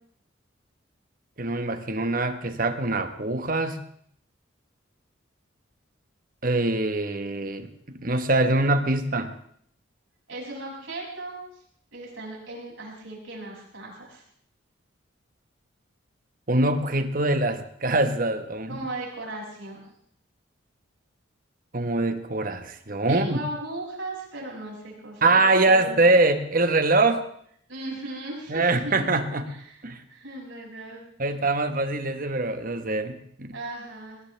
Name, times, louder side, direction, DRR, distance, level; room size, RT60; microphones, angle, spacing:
voice 1, 1.4-3.8 6.4-9.3 16.5-18.8 21.7-23.4 25.2-27.2 28.5-29.5 29.8-30.0 31.2-33.5, right 2 dB, 45° right, 8 dB, 1.2 m, -23 dB
voice 2, 10.3-11.4 11.9-14.2 18.7-19.8 23.1-25.4 25.7-26.0 27.7-29.1 29.4-29.8 30.1-31.0 33.5-34.2, right 2 dB, 70° right, -3 dB, 6.7 m, -37 dB
19.5 x 19.0 x 3.4 m, 0.65 s
head